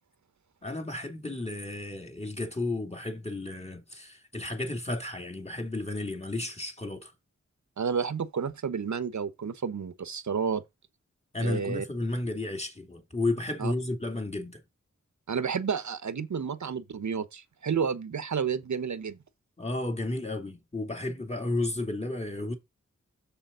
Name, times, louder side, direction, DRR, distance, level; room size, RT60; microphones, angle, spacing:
voice 1, 0.6-7.1 11.3-14.6 19.6-22.5, left 2 dB, 20° left, 2.7 m, -33 dB
voice 2, 7.8-10.6 11.4-11.8 13.6-13.7 15.3-19.2, right 6 dB, 75° right, 1.1 m, -31 dB
7.2 x 6.9 x 3.9 m
wide cardioid pair, 65°, 29 cm